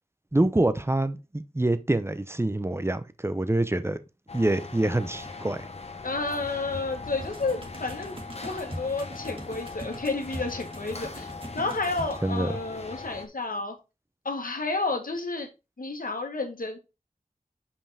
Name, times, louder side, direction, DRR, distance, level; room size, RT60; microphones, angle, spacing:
voice 1, 0.3-4.0 4.3-5.7 12.2-12.5, right 1 dB, 15° right, 0.7 m, -26 dB
sound 1, 4.3-13.3, left 4 dB, 45° left, 1.0 m, -40 dB
voice 2, 6.0-13.7 14.2-15.5 15.8-16.8, left 3 dB, 75° left, 1.6 m, -31 dB
sound 2, 7.1-12.2, right 1 dB, 40° right, 1.9 m, -42 dB
5.7 x 5.4 x 4.1 m
wide cardioid pair, 65°, 15 cm